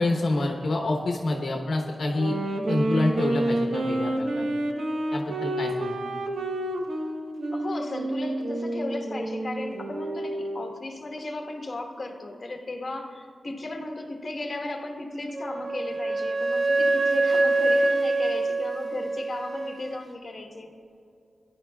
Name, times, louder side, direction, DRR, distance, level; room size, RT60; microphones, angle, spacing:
voice 1, 0.0-2.3 2.7-4.4 5.1-6.0, left 2 dB, 70° left, 1 dB, 0.9 m, -27 dB
Wind instrument woodwind instrument, 2.1-10.7, right 1 dB, 80° right, 1.0 m, -29 dB
voice 2, 7.5-20.7, left 2 dB, 40° left, 1 dB, 1.3 m, -35 dB
Wind instrument woodwind instrument 2, 15.3-20.0, right 2 dB, 40° right, 0.5 m, -25 dB
16.5 x 10.5 x 2.3 m, 2.5 s
wide cardioid pair, 100°, 0 cm